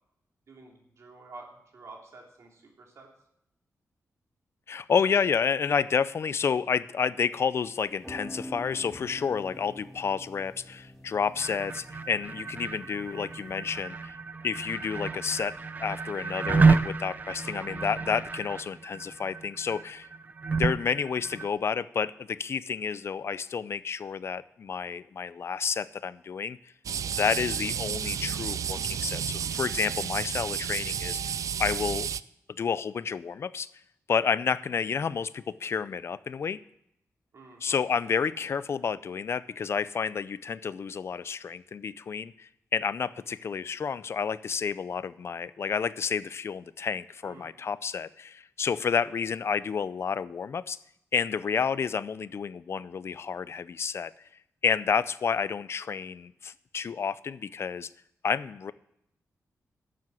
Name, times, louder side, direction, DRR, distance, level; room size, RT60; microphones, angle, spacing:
voice 1, 0.5-3.1 37.3-38.1 47.2-47.5, right 3 dB, 60° right, 0 dB, 3.2 m, -50 dB
voice 2, 4.7-14.2 14.4-20.1 20.5-26.6 27.1-31.2 31.6-32.1 32.5-33.7 34.1-36.6 37.6-50.8 51.1-54.1 54.6-57.9 58.2-58.7, left 6 dB, 50° left, 17 dB, 0.5 m, -30 dB
sound 1, 7.8-13.8, equal, 5° left, 1.8 m, -46 dB
sound 2, 11.4-21.5, right 4 dB, 30° right, 0.6 m, -30 dB
sound 3, 26.8-32.2, right 8 dB, 80° right, 0.4 m, -32 dB
11.5 x 7.6 x 7.6 m, 0.77 s
wide cardioid pair, 140°, 6 cm